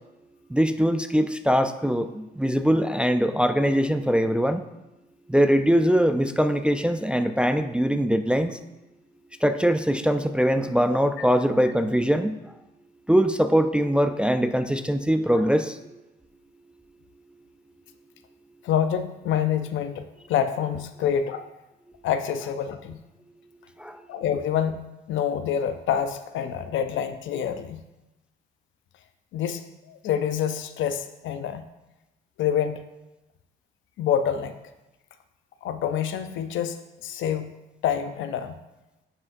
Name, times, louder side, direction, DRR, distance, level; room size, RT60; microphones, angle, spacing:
voice 1, 0.5-4.6 5.3-8.6 9.4-12.4 13.1-15.8 23.8-24.0, equal, 5° right, 8 dB, 0.3 m, -22 dB
voice 2, 18.6-21.5 22.0-23.0 24.1-27.8 29.3-31.6 32.4-32.8 34.0-34.6 35.6-37.6 37.8-38.6, left 8 dB, 75° left, 10 dB, 0.5 m, -27 dB
9.7 x 4.8 x 2.6 m, 0.99 s
cardioid pair, 90°, 20 cm